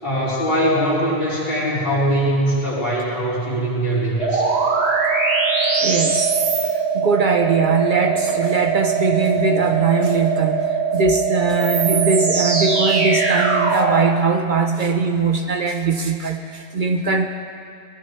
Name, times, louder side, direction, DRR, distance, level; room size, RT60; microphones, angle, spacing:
voice 1, 0.0-4.5, right 1 dB, 60° left, -9 dB, 4.8 m, -21 dB
sound 1, 4.2-14.1, right 5 dB, 85° right, 1.5 m, -21 dB
voice 2, 5.8-6.4 6.9-10.6 10.9-17.3, right 4 dB, 55° right, 5 dB, 0.9 m, -20 dB
22.5 x 18.0 x 3.3 m, 2.5 s
omnidirectional pair, 1.1 m